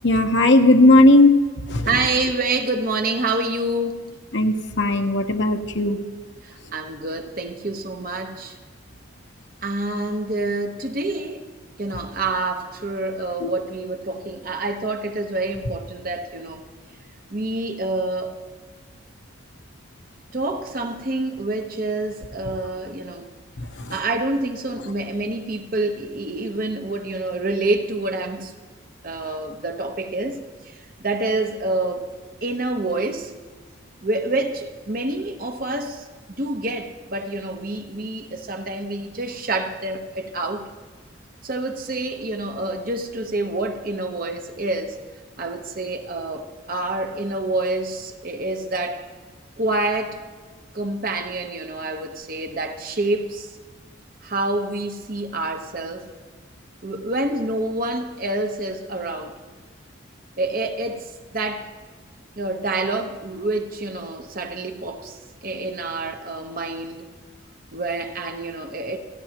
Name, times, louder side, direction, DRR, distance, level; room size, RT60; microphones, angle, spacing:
voice 1, 0.0-1.4 1.7-1.9 4.3-6.0 13.4-13.5 23.9-24.0, left 2 dB, 65° left, 1.0 m, -16 dB
voice 2, 1.8-4.1 6.4-8.6 9.6-11.4 11.8-16.6 17.3-18.4 20.3-23.3 23.9-28.5 29.0-30.4 30.7-30.8 31.0-32.1 32.4-33.3 34.0-36.1 36.4-40.7 41.4-45.0 45.4-49.1 49.6-50.2 50.7-53.5 54.2-56.1 56.8-59.4 60.4-61.7 62.4-67.1 67.7-69.0, right 2 dB, 45° right, 1.0 m, -27 dB
27.5 x 10.5 x 3.0 m
head